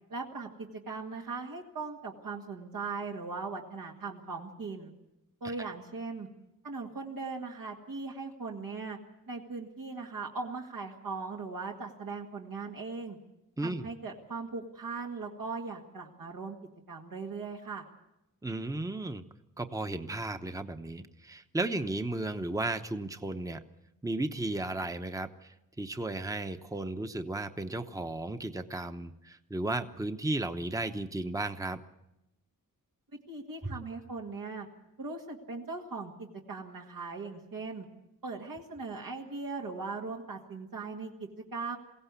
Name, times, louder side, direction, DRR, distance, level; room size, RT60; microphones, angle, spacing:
voice 1, 0.1-4.9 5.4-6.3 6.6-9.0 9.3-13.2 13.6-16.6 16.9-17.8 33.3-34.7 35.0-37.9 38.2-41.8, right 4 dB, 80° right, -1 dB, 2.0 m, -39 dB
voice 2, 13.6-13.9 18.4-19.2 19.6-23.6 24.0-31.8, right 2 dB, 10° right, 8 dB, 0.9 m, -34 dB
22.5 x 16.5 x 8.3 m, 0.92 s
wide cardioid pair, 110°, 34 cm